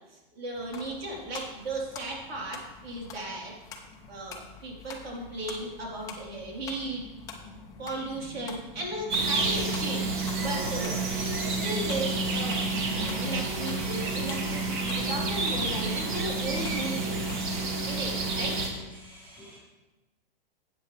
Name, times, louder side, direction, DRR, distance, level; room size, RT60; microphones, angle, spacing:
voice 1, 0.1-3.5 4.1-7.1 7.8-11.0 11.5-12.7 12.9-17.2 17.9-18.6, right 2 dB, 80° right, -3 dB, 3.8 m, -36 dB
sound 1, 0.5-17.6, left 5 dB, 10° left, 0.7 m, -44 dB
sound 2, 9.1-18.7, right 3 dB, 55° right, 2.3 m, -29 dB
voice 2, 17.4-18.3 19.0-19.6, equal, 5° right, -8 dB, 3.9 m, -52 dB
13.0 x 8.4 x 3.3 m, 1.1 s
hypercardioid pair, 165°, 30 cm